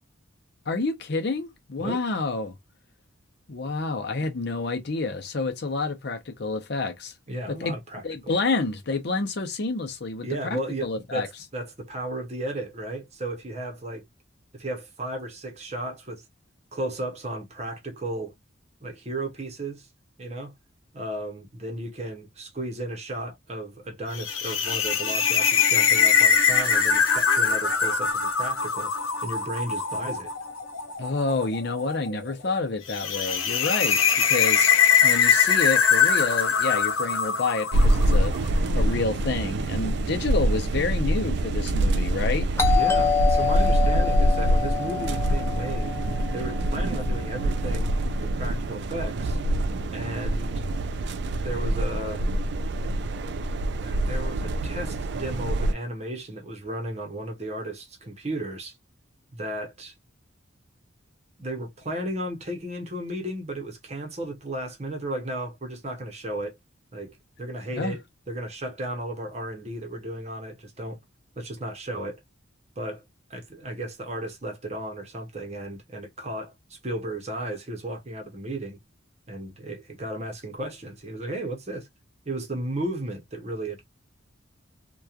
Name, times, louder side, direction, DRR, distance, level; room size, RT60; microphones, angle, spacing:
voice 1, 0.7-2.6 3.5-7.1 7.5-7.8 8.0-11.3 31.0-34.7 35.0-42.5 67.8-68.0, left 3 dB, 55° left, 0.6 m, -29 dB
voice 2, 7.3-8.0 10.2-14.0 14.6-16.2 16.7-18.3 18.8-19.9 20.2-20.5 20.9-28.9 29.2-30.3 42.7-46.0 46.3-49.4 49.9-50.6 51.4-52.3 53.8-58.8 59.3-59.9 61.4-66.6 66.9-71.0 71.4-72.2 72.8-73.0 73.3-78.8 79.3-81.9 82.2-83.8, right 1 dB, 30° right, 0.8 m, -34 dB
sound 1, 24.1-38.5, left 6 dB, 90° left, 0.8 m, -22 dB
sound 2, 37.7-55.7, right 1 dB, 55° right, 0.3 m, -25 dB
Doorbell, 42.6-47.2, left 7 dB, 15° left, 0.4 m, -27 dB
2.9 x 2.3 x 2.4 m
head